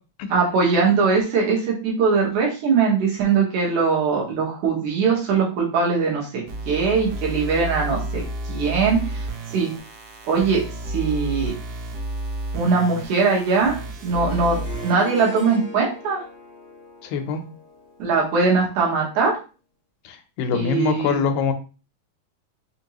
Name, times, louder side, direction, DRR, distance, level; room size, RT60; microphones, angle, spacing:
voice 1, 0.3-9.7 10.3-11.5 12.5-16.2 18.0-19.3 20.5-21.2, right 5 dB, 70° right, -2 dB, 2.5 m, -21 dB
sound 1, 6.5-14.9, right 2 dB, 85° right, 1.4 m, -31 dB
Harp, 14.0-18.9, left 3 dB, 40° left, 1.0 m, -40 dB
voice 2, 17.0-17.4 20.1-21.5, left 6 dB, 85° left, 7 dB, 2.3 m, -24 dB
5.7 x 2.6 x 2.9 m, 0.34 s
omnidirectional pair, 3.9 m